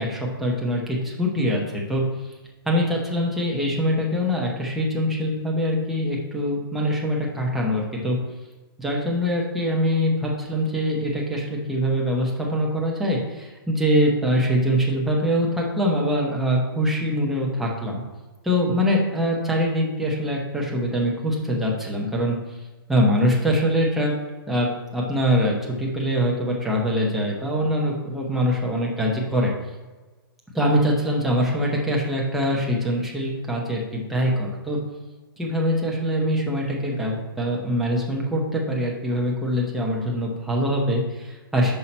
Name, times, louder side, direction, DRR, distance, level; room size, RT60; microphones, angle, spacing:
voice 1, 0.0-2.0 2.7-8.2 8.8-18.0 18.4-22.4 22.9-24.2 24.5-29.5 30.5-34.8 35.4-41.7, equal, ahead, -3 dB, 0.8 m, -23 dB
5.7 x 5.5 x 4.3 m, 1.3 s
hypercardioid pair, 165°, 12 cm